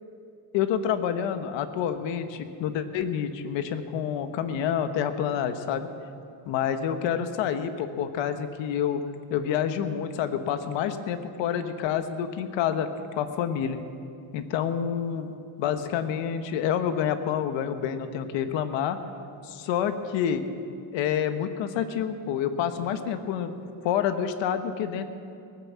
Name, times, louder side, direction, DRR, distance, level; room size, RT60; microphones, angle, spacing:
voice 1, 0.5-5.9 6.5-9.0 9.3-13.8 14.3-15.3 15.6-19.0 19.4-20.4 20.9-23.5 23.8-25.1, left 8 dB, 80° left, 9 dB, 1.2 m, -28 dB
19.0 x 9.2 x 7.4 m, 2.5 s
cardioid pair, 175°, 44 cm